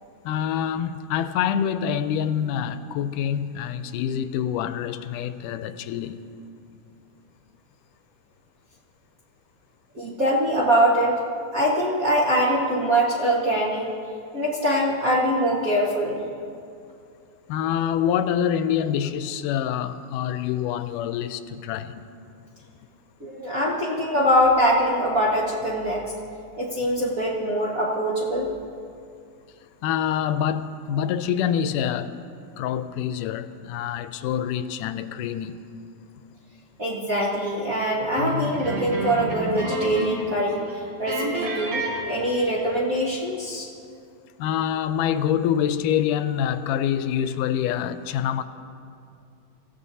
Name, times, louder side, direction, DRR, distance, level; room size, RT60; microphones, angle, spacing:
voice 1, 0.3-6.2 17.5-22.1 29.8-32.1 32.6-35.6 44.4-48.4, left 9 dB, 85° left, 2.1 m, -26 dB
voice 2, 9.9-11.2 11.5-13.9 14.3-16.2 23.2-26.1 26.6-28.5 36.8-43.7, equal, 40° right, 1.2 m, -23 dB
sound 1, 38.1-40.3 40.6-40.7 41.1-42.7, right 2 dB, 65° right, 4.3 m, -30 dB
25.5 x 15.5 x 2.7 m
omnidirectional pair, 3.6 m